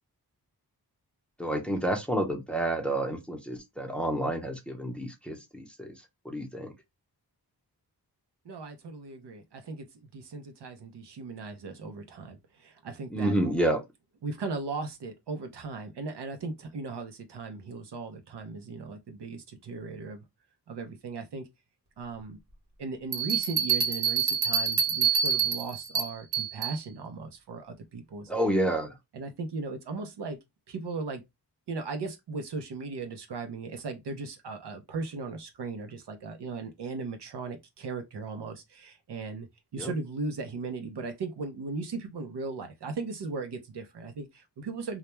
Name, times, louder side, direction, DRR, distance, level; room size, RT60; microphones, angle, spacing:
voice 1, 1.4-5.9 6.2-6.7 13.1-13.8 28.3-28.9 39.8-39.9, right 1 dB, 5° left, 0.7 m, -29 dB
voice 2, 8.4-9.8 10.1-13.3 14.2-20.2 20.7-21.5 22.0-22.4 22.8-28.3 29.1-30.4 30.7-31.2 31.7-39.5 39.7-45.0, right 4 dB, 85° right, 0.7 m, -37 dB
sound 1, 23.1-26.8, right 7 dB, 50° right, 1.1 m, -27 dB
2.2 x 2.2 x 2.9 m
wide cardioid pair, 65°, 40 cm